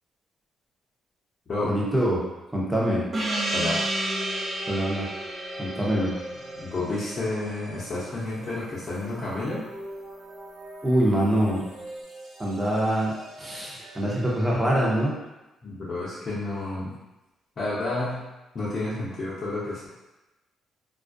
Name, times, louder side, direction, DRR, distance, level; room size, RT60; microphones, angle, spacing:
voice 1, 1.6-2.2 2.5-3.0 4.7-5.1 5.6-6.1 10.8-11.6 12.4-15.1, right 1 dB, 10° right, -4 dB, 0.7 m, -24 dB
Gong, 3.1-8.2, right 1 dB, 45° right, 0.5 m, -31 dB
sound 1, 3.8-15.1, right 1 dB, 85° right, 0.7 m, -43 dB
voice 2, 6.5-9.6 15.6-16.9 17.6-18.2 18.5-19.9, left 2 dB, 45° left, -9 dB, 0.6 m, -30 dB
2.3 x 2.1 x 2.5 m, 1.0 s
cardioid pair, 90°, 0 cm